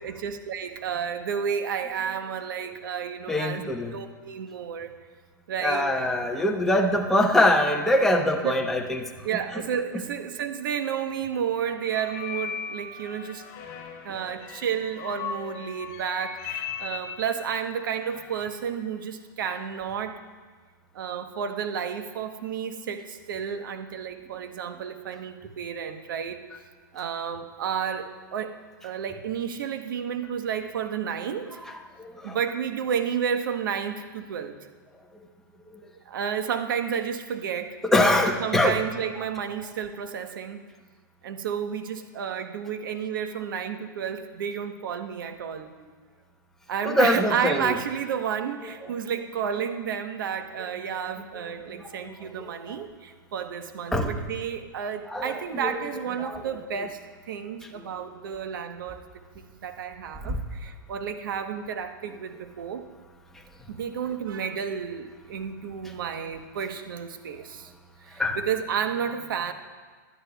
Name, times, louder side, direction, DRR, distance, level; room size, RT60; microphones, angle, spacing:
voice 1, 0.0-3.6 3.9-4.9 5.5-6.0 8.4-8.6 9.2-13.4 14.0-20.2 20.9-26.4 26.9-28.6 28.8-31.6 32.2-34.5 36.0-37.8 38.4-40.6 41.2-45.7 46.7-59.0 59.3-62.9 63.7-67.7 68.0-69.5, right 7 dB, 75° right, 7 dB, 1.1 m, -31 dB
voice 2, 3.3-4.0 5.6-9.1 32.0-32.4 37.8-38.8 46.8-47.8 52.1-52.2 52.7-52.8 53.9-54.1 55.1-55.7 56.2-56.4 60.2-60.4 68.2-68.4, left 1 dB, 5° left, 1 dB, 0.9 m, -23 dB
sound 1, 11.6-18.6, left 6 dB, 50° left, 2.1 m, -38 dB
19.5 x 12.0 x 2.3 m, 1.4 s
hypercardioid pair, 145°, 11 cm